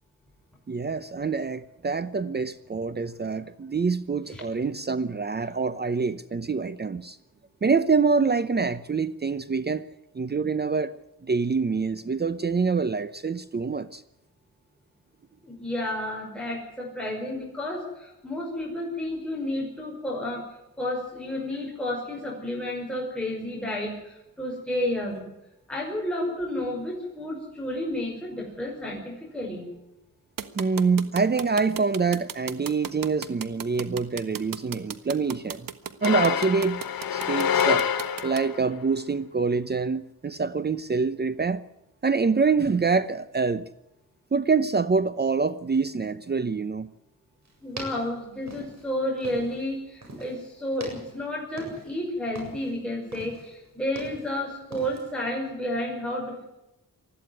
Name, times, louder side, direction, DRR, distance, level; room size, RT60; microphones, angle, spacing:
voice 1, 0.7-7.2 7.6-9.9 10.1-10.9 11.2-14.0 30.6-35.7 36.0-36.8 37.1-37.8 38.2-41.6 42.0-43.6 44.3-46.9, right 4 dB, 30° right, 0.8 m, -25 dB
voice 2, 15.4-20.4 20.8-25.3 25.7-29.7 47.6-56.5, left 1 dB, 5° left, 5.5 m, -31 dB
sound 1, 30.4-38.4, right 8 dB, 70° right, 1.5 m, -35 dB
sound 2, 36.0-38.6, left 8 dB, 85° left, 1.8 m, -26 dB
sound 3, 47.5-49.7 50.0-50.4 50.7-52.0 52.3-52.7 53.1-54.4 54.7-55.1, right 2 dB, 55° right, 7.9 m, -42 dB
20.5 x 14.0 x 9.5 m
cardioid pair, 95°, 34 cm